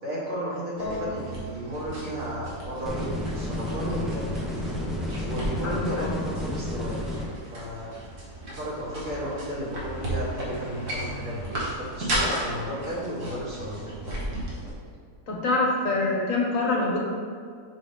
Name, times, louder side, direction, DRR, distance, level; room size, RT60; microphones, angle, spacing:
voice 1, 0.0-4.4 5.2-7.0 7.5-7.9 8.6-13.9, equal, 60° right, -6 dB, 2.2 m, -33 dB
voice 2, 0.8-1.1 1.9-2.1 5.6-6.2 15.3-17.0, left 2 dB, 60° left, -2 dB, 1.4 m, -26 dB
sound 1, 0.8-14.7, right 1 dB, 90° right, 2.1 m, -35 dB
sound 2, 2.9-7.3, left 1 dB, ahead, 0.6 m, -31 dB
6.3 x 5.8 x 3.3 m, 2.2 s
omnidirectional pair, 1.6 m